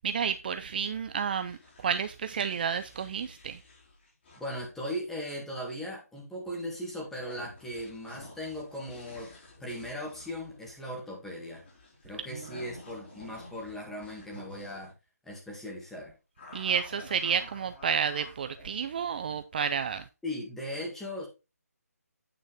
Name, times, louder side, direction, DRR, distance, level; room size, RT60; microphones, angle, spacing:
voice 1, 0.0-1.6 1.8-3.6 16.5-20.0, right 7 dB, 35° right, 0.5 m, -30 dB
sound 1, 0.9-4.8 7.1-14.9 16.4-19.5, left 2 dB, 40° left, 4.3 m, -51 dB
voice 2, 4.4-9.3 9.6-11.7 12.0-14.9 15.2-16.1 20.2-21.3, equal, 5° left, 2.0 m, -38 dB
9.0 x 6.3 x 3.4 m
figure-of-eight pair, 155°, 9 cm